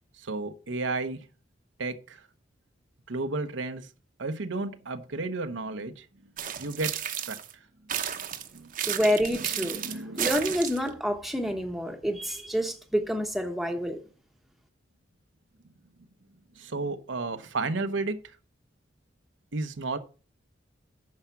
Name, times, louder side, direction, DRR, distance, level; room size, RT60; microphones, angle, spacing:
voice 1, 0.2-1.2 1.8-2.3 3.1-3.9 4.2-6.1 6.6-7.4 8.5-8.7 9.5-10.3 16.6-18.2 19.5-20.0, right 3 dB, 80° right, 0.9 m, -32 dB
sound 1, 6.4-7.5 7.9-10.9, right 9 dB, 45° right, 0.9 m, -33 dB
voice 2, 8.9-9.8 10.2-14.0, equal, ahead, 1.0 m, -28 dB
9.6 x 5.7 x 5.8 m
head